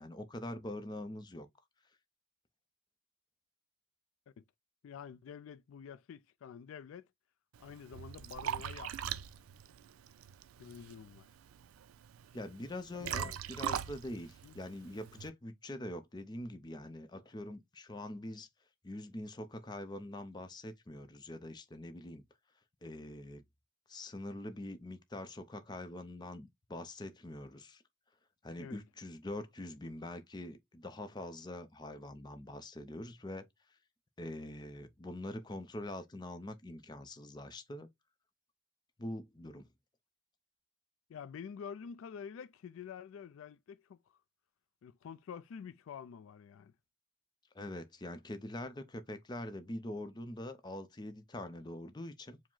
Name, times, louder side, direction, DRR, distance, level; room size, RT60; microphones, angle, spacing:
voice 1, 0.0-1.5 12.3-18.5 18.8-22.2 22.8-23.4 23.9-27.8 28.4-33.5 34.2-37.9 39.0-39.7 47.5-52.4, left 1 dB, 20° left, 0.5 m, -44 dB
voice 2, 4.8-7.1 7.6-9.2 10.6-11.3 13.0-13.4 14.4-14.5 28.6-28.8 41.1-44.2 44.8-46.7, left 7 dB, 75° left, 0.3 m, -48 dB
Liquid, 7.5-15.3, right 9 dB, 85° right, 0.4 m, -42 dB
4.9 x 2.0 x 3.7 m
head